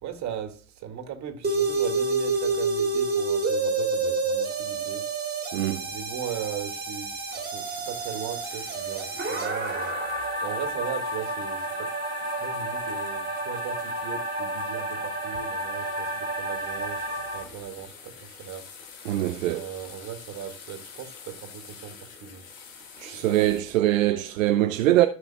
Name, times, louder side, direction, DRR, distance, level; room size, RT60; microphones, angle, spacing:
voice 1, 0.0-5.1 5.9-10.0 10.4-11.9 12.4-18.7 19.4-22.4 23.2-23.5, right 9 dB, 40° right, 2.1 m, -38 dB
sound 1, 1.4-17.4, right 3 dB, 20° right, 2.7 m, -29 dB
voice 2, 5.5-5.9 19.1-19.6 23.0-25.1, right 14 dB, 70° right, 0.7 m, -23 dB
sound 2, 7.3-23.6, left 6 dB, 70° left, 2.1 m, -47 dB
14.0 x 6.3 x 2.2 m
figure-of-eight pair, 70°, 41 cm